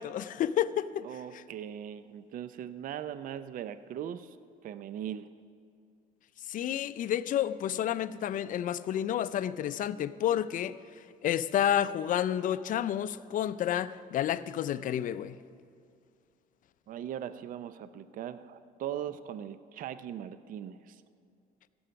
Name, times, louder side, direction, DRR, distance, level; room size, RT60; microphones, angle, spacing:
voice 1, 0.0-1.0 1.3-1.4 6.5-10.7 11.2-15.4, left 11 dB, 50° left, 14 dB, 0.4 m, -30 dB
voice 2, 1.0-4.4 4.6-5.3 16.9-21.0, right 10 dB, 55° right, 13 dB, 0.5 m, -39 dB
16.0 x 7.0 x 5.7 m, 2.4 s
cardioid pair, 110°, 17 cm